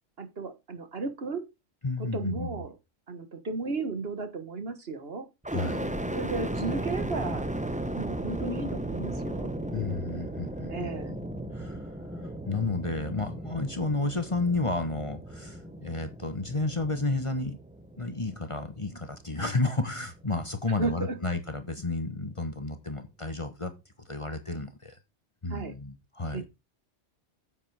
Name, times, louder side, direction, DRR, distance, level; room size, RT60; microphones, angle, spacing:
voice 1, 0.2-1.4 2.0-2.7 3.1-5.3 6.1-7.5 7.9-9.5 10.7-11.2 20.8-21.2 25.5-25.7 26.3-26.5, right 3 dB, 55° right, 1.6 m, -34 dB
voice 2, 1.8-2.7 5.5-6.0 9.7-11.2 11.5-17.6 18.0-23.7 24.0-25.0 25.4-26.5, left 3 dB, 25° left, 1.2 m, -32 dB
sound 1, 5.4-19.4 20.0-20.7, right 1 dB, 10° right, 0.7 m, -36 dB
9.7 x 7.8 x 4.8 m
omnidirectional pair, 1.2 m